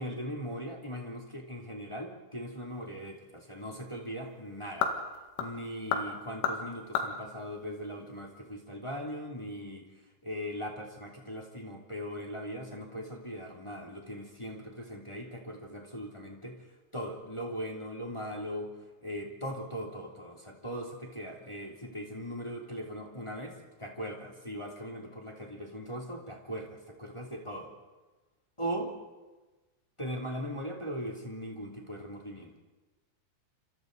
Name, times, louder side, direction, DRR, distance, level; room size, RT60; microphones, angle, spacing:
voice 1, 0.0-4.9 5.4-9.9 10.2-16.6 16.9-18.7 19.0-27.7 28.6-28.9 30.0-32.5, equal, 10° left, -1 dB, 1.8 m, -39 dB
sound 1, 2.7-8.5, left 6 dB, 90° left, 4.5 m, -36 dB
29.5 x 27.5 x 4.1 m, 1.2 s
omnidirectional pair, 5.6 m